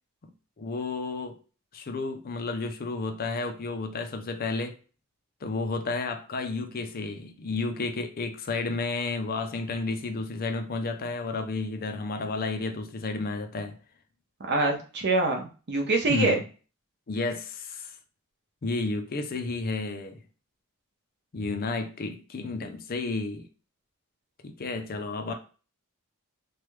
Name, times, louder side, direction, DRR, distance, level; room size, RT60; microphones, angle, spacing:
voice 1, 0.6-1.4 1.7-4.8 5.4-13.8 16.1-16.4 17.1-17.9 18.6-20.2 21.3-23.5 24.4-25.3, left 3 dB, 40° left, 0.5 m, -32 dB
voice 2, 14.4-16.4, right 2 dB, 50° right, 0.7 m, -25 dB
3.2 x 2.3 x 3.1 m
head